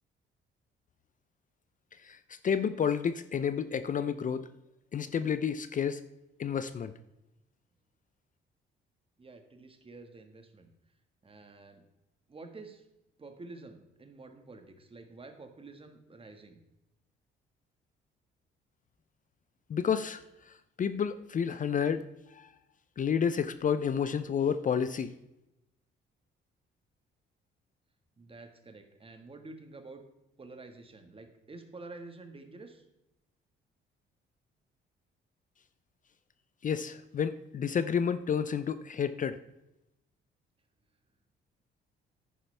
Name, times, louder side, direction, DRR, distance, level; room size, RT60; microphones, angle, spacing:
voice 1, 2.0-4.5 4.9-6.0 6.4-6.9 19.7-20.2 20.8-22.0 22.3-22.5 23.0-25.1 36.6-39.4, left 7 dB, 40° left, 12 dB, 0.5 m, -30 dB
voice 2, 9.2-10.7 11.2-11.8 12.3-12.9 13.2-16.6 28.2-30.0 30.4-32.8, right 3 dB, 30° right, 6 dB, 1.5 m, -49 dB
10.0 x 9.6 x 3.4 m, 0.89 s
cardioid pair, 90°, 20 cm